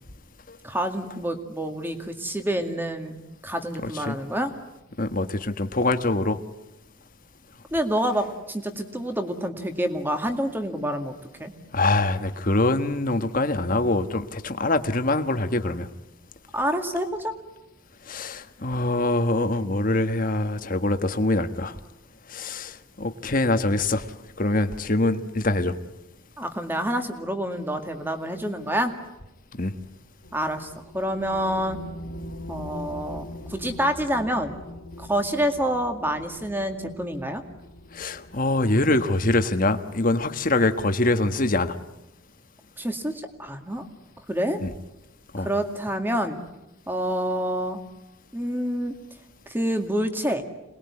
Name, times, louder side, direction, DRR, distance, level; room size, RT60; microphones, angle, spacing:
voice 1, 0.6-4.5 7.7-11.1 11.4-11.5 16.5-17.3 26.4-28.9 30.3-31.8 32.5-34.6 35.0-37.4 42.8-43.1 43.4-43.8 44.3-44.6 45.4-46.4 46.9-47.8 48.3-48.9 49.5-50.4, equal, 10° right, 6 dB, 2.1 m, -27 dB
voice 2, 3.8-4.2 5.0-6.4 11.7-15.9 18.1-21.8 22.3-24.1 24.4-25.7 29.5-29.7 37.9-41.8 44.6-44.7 45.3-45.5, left 2 dB, 40° left, 8 dB, 1.4 m, -24 dB
sound 1, 30.2-40.2, left 1 dB, 80° left, 2.3 m, -42 dB
27.0 x 20.5 x 9.8 m, 0.95 s
head